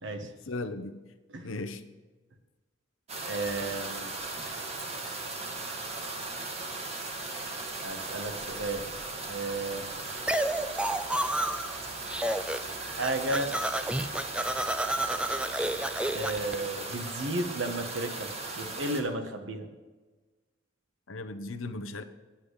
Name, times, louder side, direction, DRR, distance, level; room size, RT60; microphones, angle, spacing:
voice 1, 0.2-1.0 1.4-1.8 21.1-22.0, left 2 dB, 80° left, 9 dB, 0.9 m, -37 dB
sound 1, 3.1-19.0, right 3 dB, 30° right, 1.3 m, -38 dB
voice 2, 3.2-4.1 7.8-8.8 9.3-9.9 12.7-13.5 16.1-19.7, right 2 dB, 70° right, 6 dB, 1.3 m, -33 dB
sound 2, 10.3-11.8 12.1-12.7 13.0-16.5, right 1 dB, 5° right, 0.3 m, -30 dB
9.8 x 9.0 x 5.1 m, 1.3 s
head